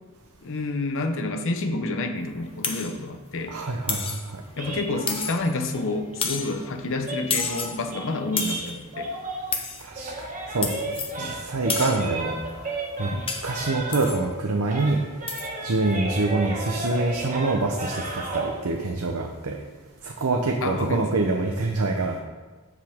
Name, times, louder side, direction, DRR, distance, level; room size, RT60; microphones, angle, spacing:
voice 1, 0.4-3.5 4.6-9.1 11.2-11.4 13.1-13.3 15.8-15.9 20.6-21.0, left 2 dB, 60° left, 5 dB, 0.9 m, -29 dB
sound 1, 2.6-3.0 3.9-4.3 5.1-5.6 6.2-6.6 7.3-7.8 8.4-8.8 9.5-9.9 10.6-11.2 11.7-12.1 13.3-13.6 13.9-14.2 15.3-15.5, left 5 dB, 25° left, 0.8 m, -30 dB
voice 2, 3.5-4.4 9.8-10.7 11.2-12.4 13.0-13.1 13.4-15.0 15.6-19.6 20.0-22.2, right 2 dB, 70° right, 2 dB, 0.8 m, -25 dB
sound 2, 4.5-9.6 9.9-14.4 14.7-18.6, right 2 dB, 35° right, 1.5 m, -34 dB
13.5 x 5.0 x 3.6 m, 1.3 s
head